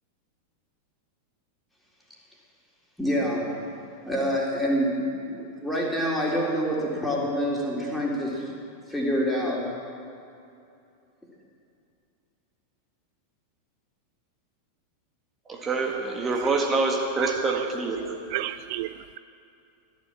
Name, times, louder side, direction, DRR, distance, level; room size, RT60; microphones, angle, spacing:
voice 1, 3.0-3.5 4.1-8.5 8.9-9.7, equal, 5° left, -4 dB, 3.8 m, -26 dB
voice 2, 15.5-18.2, right 3 dB, 20° right, 0 dB, 1.9 m, -26 dB
voice 3, 17.2-17.7 18.3-19.2, right 15 dB, 50° right, 14 dB, 0.3 m, -33 dB
15.0 x 12.0 x 7.5 m, 2.6 s
figure-of-eight pair, 90°, 0 cm